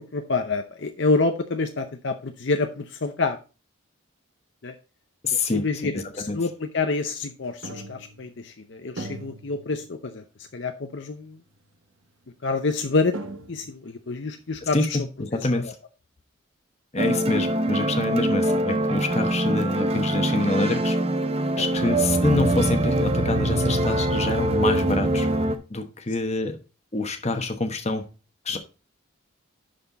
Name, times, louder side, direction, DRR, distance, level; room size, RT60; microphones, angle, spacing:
voice 1, 0.0-3.4 4.6-4.7 5.4-10.2 10.5-11.4 12.4-13.2 13.5-15.0 15.3-15.7 21.6-21.9, left 3 dB, 55° left, 6 dB, 0.7 m, -27 dB
voice 2, 5.2-5.6 5.9-6.4 14.7-15.8 16.9-21.0 21.5-25.3 25.7-26.6 26.9-28.0 28.4-28.6, left 2 dB, 30° left, 6 dB, 1.0 m, -26 dB
sound 1, 7.6-8.5 9.0-10.1 10.5-10.6 11.5-11.6 12.7-12.8 13.1-13.9, right 2 dB, 65° right, 1.0 m, -39 dB
sound 2, 17.0-25.6, right 1 dB, 30° right, 0.7 m, -23 dB
11.5 x 4.3 x 4.0 m, 0.32 s
head